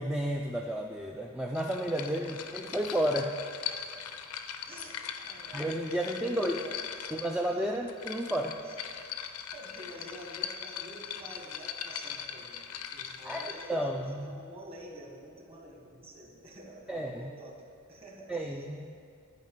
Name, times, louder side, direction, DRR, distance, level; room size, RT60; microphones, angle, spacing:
voice 1, 0.0-3.3 5.5-6.6 7.1-8.6 13.2-14.3 16.9-17.3 18.3-18.9, right 1 dB, 5° right, 1 dB, 0.3 m, -32 dB
sound 1, 1.6-13.8, left 8 dB, 75° left, 0.6 m, -40 dB
voice 2, 2.0-2.4 3.7-3.9 4.7-7.1 7.5-7.7 8.6-8.8 9.2-12.6 12.9-18.6, right 1 dB, 25° right, 0 dB, 1.4 m, -49 dB
10.5 x 5.1 x 7.5 m, 2.4 s
head